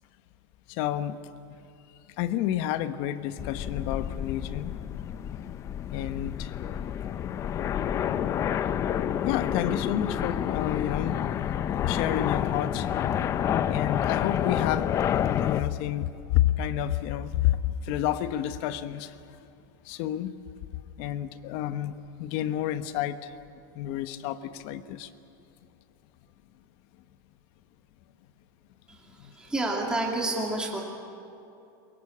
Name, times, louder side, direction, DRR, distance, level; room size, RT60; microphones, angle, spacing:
voice 1, 0.7-1.2 2.2-4.7 5.9-6.5 9.2-11.2 11.8-12.9 13.7-19.2 19.8-20.3 21.0-21.9 22.2-23.3 23.7-25.1 29.2-29.3, left 12 dB, 45° left, 12 dB, 1.1 m, -29 dB
sound 1, 3.4-15.6, left 9 dB, 25° left, 0.6 m, -29 dB
voice 2, 28.9-30.8, right 2 dB, 5° right, -1 dB, 2.7 m, -30 dB
23.5 x 22.5 x 8.6 m, 2.8 s
supercardioid pair, 155°, 12 cm